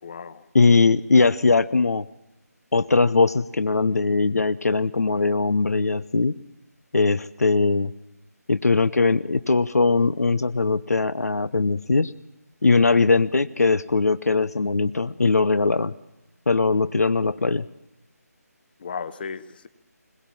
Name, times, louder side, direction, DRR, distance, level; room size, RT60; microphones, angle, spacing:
voice 1, 0.0-0.5 18.8-19.7, left 6 dB, 35° left, 15 dB, 1.0 m, -35 dB
voice 2, 0.5-2.0 2.7-6.3 6.9-7.9 8.5-12.1 12.6-15.9 16.5-17.7, left 4 dB, 65° left, 15 dB, 0.7 m, -20 dB
21.5 x 20.0 x 7.4 m, 0.96 s
figure-of-eight pair, 155°, 9 cm